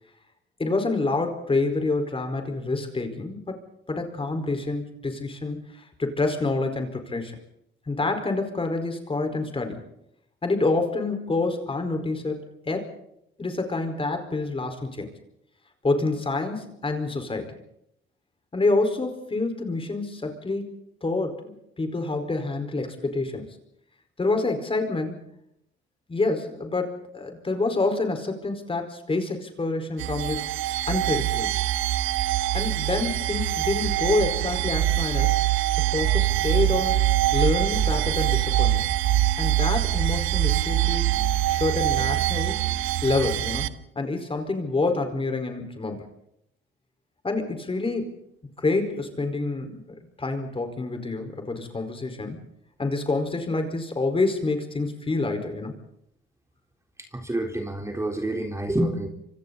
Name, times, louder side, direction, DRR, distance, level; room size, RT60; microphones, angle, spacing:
voice 1, 0.6-3.6 3.9-7.4 7.9-9.9 10.4-12.9 13.4-15.1 15.8-17.6 18.5-20.6 21.0-23.6 24.2-25.3 26.1-30.4 30.9-31.5 32.5-35.3 35.9-38.8 39.4-41.1 41.5-42.6 43.0-46.1 47.2-48.2 48.6-49.8 50.2-52.4 52.8-55.7, left 3 dB, 25° left, 6 dB, 4.9 m, -27 dB
sound 1, 30.0-43.7, right 12 dB, 90° right, 1.1 m, -24 dB
voice 2, 57.1-59.1, right 1 dB, 15° right, 3 dB, 3.9 m, -27 dB
28.0 x 26.0 x 4.2 m, 0.76 s
cardioid pair, 90°, 20 cm